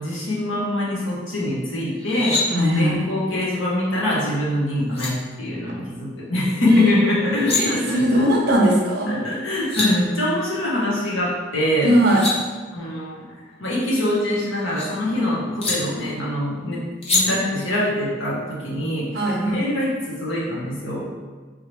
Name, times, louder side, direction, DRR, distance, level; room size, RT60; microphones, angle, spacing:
voice 1, 0.0-2.4 2.7-8.3 9.1-11.9 12.7-13.2 13.6-16.9 17.1-21.1, left 1 dB, 75° left, -6 dB, 1.2 m, -23 dB
sound 1, 1.9-2.4 4.5-4.6 4.9-5.1 7.2-7.6 9.3-9.4 9.5-9.9 11.8-12.3 13.8-14.9 15.6-15.7 17.0-17.2, left 3 dB, 30° left, 0.7 m, -25 dB
voice 2, 2.5-3.0 7.5-9.1 11.8-12.2 19.1-19.6, right 1 dB, 50° right, -2 dB, 0.7 m, -19 dB
3.7 x 3.1 x 3.1 m, 1.4 s
head